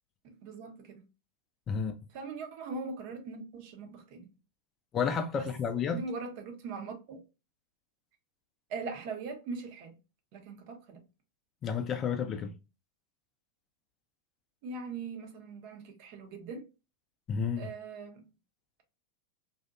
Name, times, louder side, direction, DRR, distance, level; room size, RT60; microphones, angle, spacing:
voice 1, 0.2-1.0 2.1-4.3 5.4-5.5 5.9-7.2 8.7-9.9 10.3-11.0 14.6-16.6 17.6-18.3, right 4 dB, 45° right, 0.6 m, -41 dB
voice 2, 1.7-2.0 4.9-6.0 11.6-12.5 17.3-17.7, left 6 dB, 30° left, 0.4 m, -31 dB
2.6 x 2.1 x 2.4 m
figure-of-eight pair, 90°, 0 cm